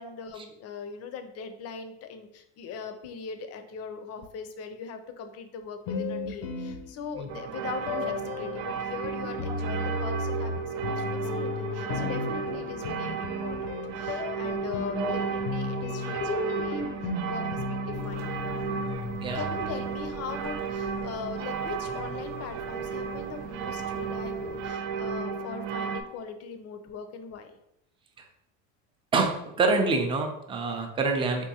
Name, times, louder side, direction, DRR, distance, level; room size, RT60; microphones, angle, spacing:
voice 1, 0.0-18.3 19.3-27.5, left 6 dB, 40° left, 8 dB, 0.5 m, -40 dB
sound 1, 5.9-7.3 7.9-20.1, left 4 dB, 85° left, 0.6 m, -35 dB
sound 2, 7.3-26.0, right 6 dB, 85° right, 0.5 m, -34 dB
sound 3, 17.9-24.7, right 3 dB, 45° right, 0.8 m, -46 dB
voice 2, 18.8-19.4 29.1-31.5, right 3 dB, 15° right, 3 dB, 0.4 m, -27 dB
3.5 x 2.6 x 2.8 m, 0.81 s
supercardioid pair, 105°, 37 cm